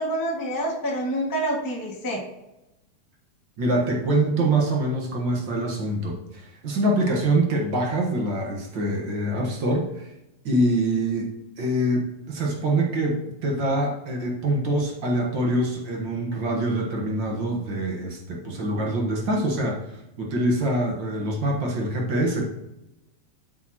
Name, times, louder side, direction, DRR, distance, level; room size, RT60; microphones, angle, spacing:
voice 1, 0.0-2.2, right 1 dB, 10° left, -4 dB, 1.1 m, -27 dB
voice 2, 3.6-10.1 10.4-11.3 11.6-19.8 20.2-22.6, right 1 dB, 50° right, -1 dB, 1.5 m, -25 dB
12.5 x 6.2 x 2.9 m, 0.94 s
omnidirectional pair, 3.3 m